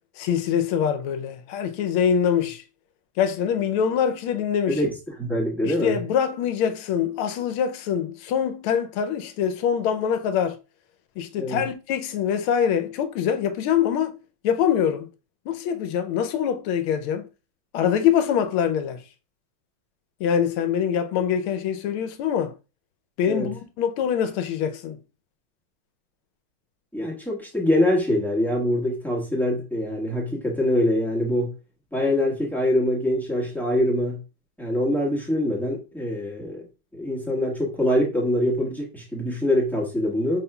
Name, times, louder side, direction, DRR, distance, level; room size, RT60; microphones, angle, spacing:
voice 1, 0.2-2.6 3.2-4.8 5.6-10.6 11.2-14.1 14.4-15.1 15.5-17.2 17.7-19.0 20.2-22.5 23.2-25.0, left 8 dB, 80° left, 1.5 m, -24 dB
voice 2, 5.2-6.0 11.4-11.6 23.3-23.5 26.9-31.5 31.9-34.2 34.6-36.6 36.9-40.4, left 1 dB, ahead, 0.9 m, -24 dB
5.4 x 4.2 x 2.2 m
omnidirectional pair, 2.4 m